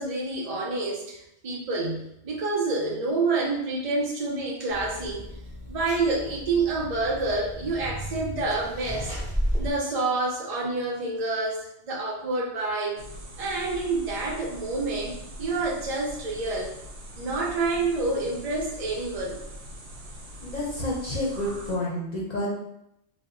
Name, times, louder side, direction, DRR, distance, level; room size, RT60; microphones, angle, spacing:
voice 1, 0.0-5.2 5.7-9.1 9.6-13.0 13.4-16.8 17.1-19.4, right 3 dB, 55° right, -3 dB, 0.4 m, -28 dB
sound 1, 4.7-9.7, equal, 10° right, 0.6 m, -34 dB
sound 2, 13.0-21.8, right 1 dB, 80° right, 0.9 m, -42 dB
voice 2, 20.4-22.5, left 1 dB, 50° left, -4 dB, 0.6 m, -29 dB
2.0 x 2.0 x 3.5 m, 0.80 s
omnidirectional pair, 1.2 m